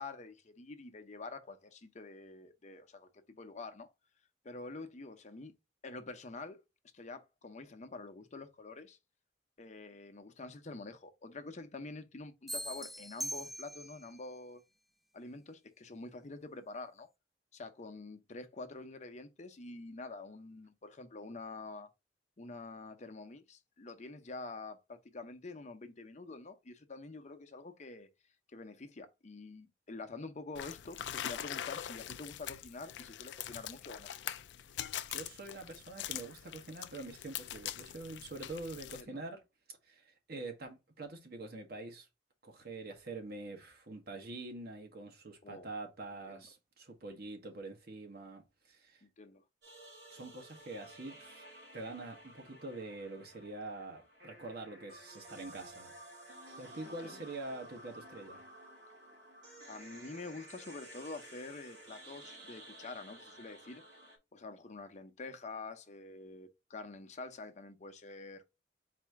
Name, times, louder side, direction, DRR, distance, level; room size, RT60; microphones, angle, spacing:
voice 1, 0.0-3.9 4.4-5.5 5.8-6.6 6.9-9.0 9.6-14.6 15.1-17.1 17.5-21.9 22.4-28.1 28.5-34.1 39.0-39.2 45.4-45.7 46.3-46.4 49.0-49.4 57.0-57.3 59.7-63.8 64.3-68.4, left 3 dB, 40° left, 0.7 m, -47 dB
sound 1, 12.5-14.1, equal, ahead, 0.4 m, -41 dB
sound 2, 30.5-39.0, left 11 dB, 70° left, 0.4 m, -43 dB
voice 2, 35.1-39.4 39.9-42.1 42.4-49.0 50.1-51.4 51.7-55.9 56.6-58.4, right 2 dB, 60° right, 1.3 m, -45 dB
sound 3, 49.6-64.2, right 1 dB, 80° right, 2.4 m, -53 dB
4.2 x 2.7 x 4.6 m
head